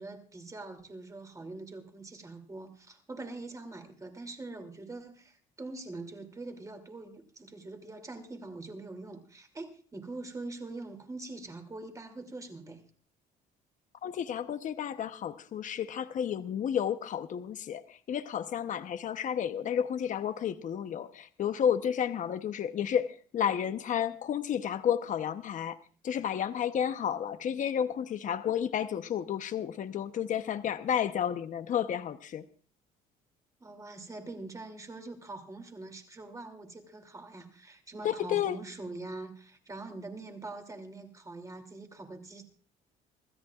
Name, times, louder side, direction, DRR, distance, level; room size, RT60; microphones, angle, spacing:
voice 1, 0.0-12.8 33.6-42.4, right 2 dB, 20° right, 5 dB, 2.8 m, -43 dB
voice 2, 14.0-17.8 18.1-25.8 26.0-32.4 38.0-38.6, left 9 dB, 50° left, 10 dB, 0.9 m, -31 dB
26.5 x 13.5 x 2.4 m, 0.41 s
cardioid pair, 110°, 17 cm